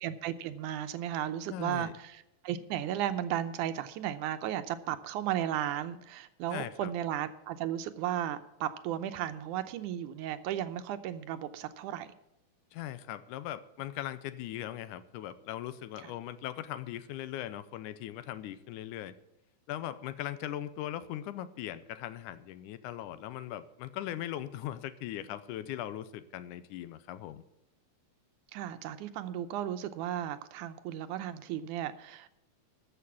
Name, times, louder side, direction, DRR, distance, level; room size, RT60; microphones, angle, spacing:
voice 1, 0.0-12.1 16.0-16.1 28.5-32.3, right 11 dB, 80° right, 10 dB, 2.1 m, -35 dB
voice 2, 1.5-1.9 6.5-6.9 12.7-19.1 19.7-27.4, left 12 dB, 80° left, 14 dB, 2.1 m, -39 dB
13.5 x 6.8 x 7.1 m, 0.87 s
omnidirectional pair, 3.7 m